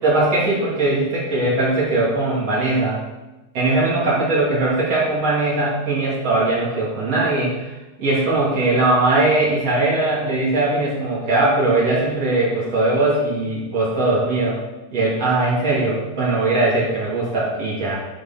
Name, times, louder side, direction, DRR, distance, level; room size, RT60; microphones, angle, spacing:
voice 1, 0.0-3.0 3.5-7.7 8.0-14.6 14.9-17.9, right 2 dB, 40° right, -8 dB, 2.6 m, -20 dB
11.0 x 5.0 x 5.8 m, 1.1 s
omnidirectional pair, 5.9 m